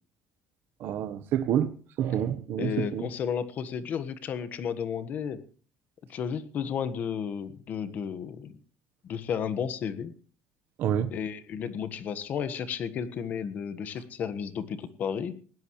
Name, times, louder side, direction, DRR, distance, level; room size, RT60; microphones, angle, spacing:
voice 1, 0.8-1.7 2.0-3.0 10.8-11.1, right 9 dB, 50° right, 1.1 m, -28 dB
voice 2, 2.6-5.4 6.1-8.6 9.0-10.1 11.1-15.3, left 7 dB, 35° left, 1.4 m, -33 dB
20.0 x 17.0 x 3.2 m
cardioid pair, 175°, 5 cm